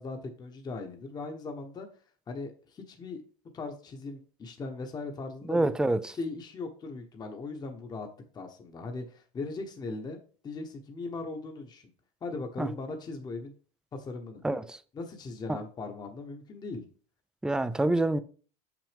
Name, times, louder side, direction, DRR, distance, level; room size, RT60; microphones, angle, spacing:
voice 1, 0.0-1.9 2.3-3.2 3.5-5.7 6.1-8.1 8.3-10.2 10.4-11.9 12.2-13.5 13.9-14.4 14.9-16.9, left 3 dB, 20° left, 1.0 m, -39 dB
voice 2, 5.5-6.1 12.6-12.7 14.4-14.8 15.5-15.6 17.4-18.2, right 2 dB, 5° right, 0.4 m, -26 dB
6.8 x 6.0 x 3.4 m
supercardioid pair, 135°, 19 cm